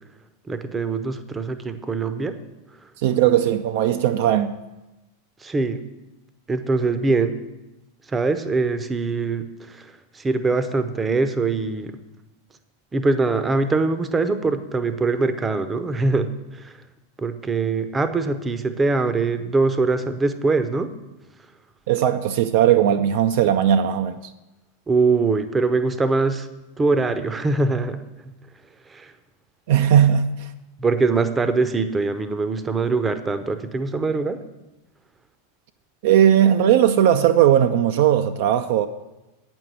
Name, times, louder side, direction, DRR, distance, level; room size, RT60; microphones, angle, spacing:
voice 1, 0.5-2.4 5.4-5.8 6.5-7.4 8.1-12.0 12.9-16.8 17.2-20.9 24.9-26.5 26.8-28.3 28.9-29.1 30.8-34.4, right 3 dB, 15° right, 0.7 m, -23 dB
voice 2, 3.0-4.6 21.9-24.3 29.7-30.5 36.0-38.9, right 10 dB, 50° right, 0.4 m, -18 dB
9.0 x 6.2 x 8.0 m
figure-of-eight pair, 90°, 0 cm